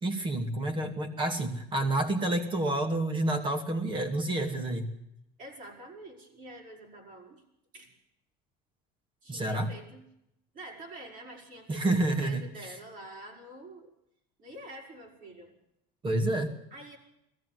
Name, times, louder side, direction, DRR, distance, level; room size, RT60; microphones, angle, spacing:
voice 1, 0.0-4.9 9.3-9.7 11.7-12.4 16.0-16.5, right 1 dB, 25° right, 7 dB, 2.5 m, -29 dB
voice 2, 5.4-7.4 7.7-7.9 9.2-10.0 10.5-13.9 14.4-15.6 16.7-17.0, right 1 dB, 40° right, 1 dB, 5.7 m, -47 dB
20.0 x 14.0 x 9.4 m, 0.81 s
cardioid pair, 150°, 20 cm